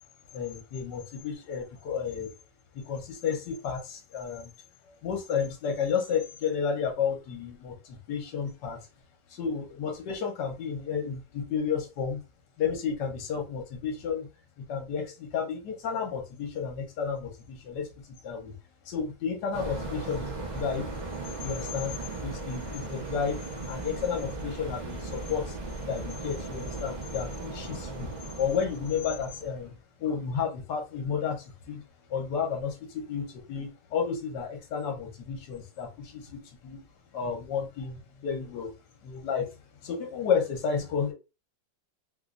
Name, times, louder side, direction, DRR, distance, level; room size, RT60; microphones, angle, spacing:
voice 1, 0.3-2.3 2.7-4.5 5.0-8.8 9.3-12.2 12.6-14.3 14.7-17.9 18.2-18.5 18.9-20.9 21.4-23.4 23.7-25.5 25.9-28.1 28.4-29.7 30.0-31.8 32.1-36.8 37.1-38.7 39.0-39.5 39.8-41.1, left 6 dB, 70° left, 4 dB, 1.5 m, -32 dB
sound 1, 19.5-29.7, right 3 dB, 45° right, 0.5 m, -37 dB
3.3 x 3.0 x 2.5 m, 0.27 s
omnidirectional pair, 2.0 m